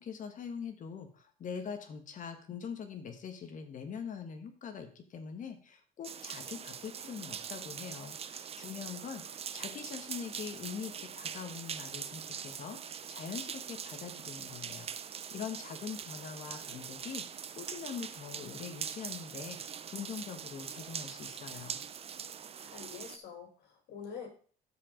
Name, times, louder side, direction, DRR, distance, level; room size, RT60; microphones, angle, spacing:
voice 1, 0.0-21.8, left 6 dB, 50° left, 7 dB, 1.4 m, -43 dB
sound 1, 6.0-23.2, right 7 dB, 35° right, 0.6 m, -43 dB
voice 2, 22.6-24.3, left 6 dB, 75° left, 2 dB, 3.8 m, -46 dB
12.5 x 5.0 x 3.8 m, 0.42 s
cardioid pair, 110°, 17 cm